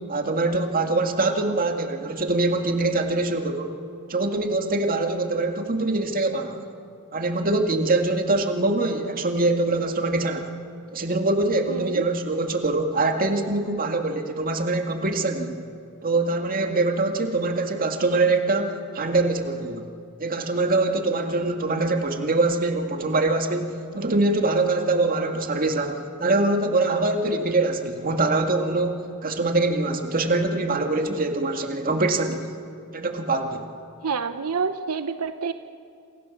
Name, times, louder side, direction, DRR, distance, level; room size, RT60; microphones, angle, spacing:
voice 1, 0.1-3.7 4.1-6.6 7.1-10.5 10.9-15.6 16.0-19.9 20.2-32.5 32.9-33.7, right 2 dB, 40° right, 5 dB, 2.1 m, -24 dB
voice 2, 11.7-12.0 34.0-35.5, right 5 dB, 90° right, 10 dB, 0.9 m, -28 dB
28.0 x 26.5 x 7.3 m, 2.5 s
head